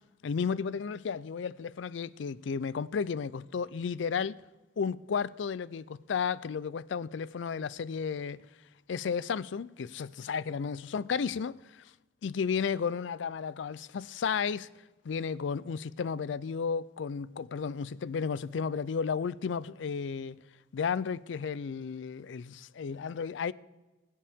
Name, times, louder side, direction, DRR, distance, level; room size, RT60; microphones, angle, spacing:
voice 1, 0.2-4.4 4.8-8.4 8.9-11.9 12.2-14.7 15.0-20.4 20.7-23.5, left 6 dB, 70° left, 0.4 m, -33 dB
21.0 x 8.6 x 3.6 m
head